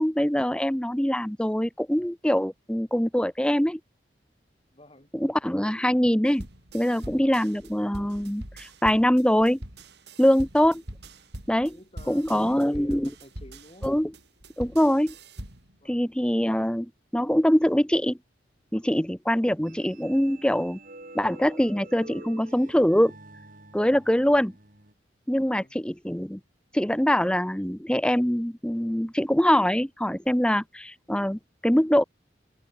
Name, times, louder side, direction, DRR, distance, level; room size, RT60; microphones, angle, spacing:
voice 1, 0.0-3.8 5.1-6.5 6.7-9.6 10.2-10.8 11.5-11.8 12.1-13.1 13.8-14.1 14.6-15.1 15.9-18.2 18.7-20.8 21.1-23.1 23.7-24.5 25.3-26.4 26.7-32.0, equal, 5° left, 0.9 m, -23 dB
voice 2, 4.7-5.1 7.0-7.4 10.3-10.4 11.7-13.9 15.8-16.1 25.4-25.8, left 1 dB, 30° left, 6.5 m, -51 dB
sound 1, 6.3-15.7, right 1 dB, 65° right, 7.5 m, -43 dB
sound 2, 19.6-24.9, right 2 dB, 50° right, 6.3 m, -47 dB
head